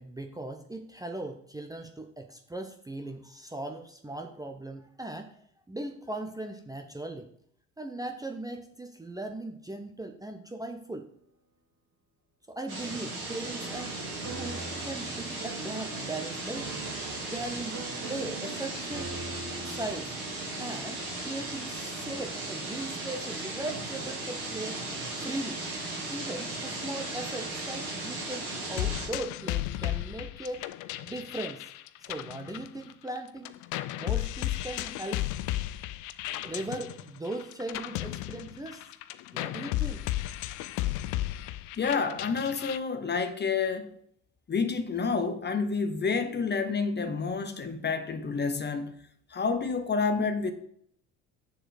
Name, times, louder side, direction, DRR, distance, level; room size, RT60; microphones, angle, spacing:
voice 1, 0.0-5.3 5.7-7.3 7.8-11.1 12.5-14.1 14.3-16.7 17.2-17.8 18.0-19.1 19.6-20.1 20.6-24.8 25.2-25.6 26.1-30.6 31.0-31.6 32.1-33.5 34.0-35.2 36.4-38.8 39.3-40.0, right 2 dB, 10° right, 0.8 m, -38 dB
sound 1, 12.7-29.1, right 2 dB, 80° right, 2.8 m, -36 dB
sound 2, 13.3-19.8, right 3 dB, 40° right, 2.4 m, -43 dB
sound 3, 28.8-33.2 33.4-42.8, left 15 dB, 50° left, 0.5 m, -34 dB
voice 2, 41.8-43.9 44.5-48.9 49.3-50.5, left 5 dB, 25° left, 0.9 m, -29 dB
6.7 x 6.6 x 3.9 m
figure-of-eight pair, 60°, 40 cm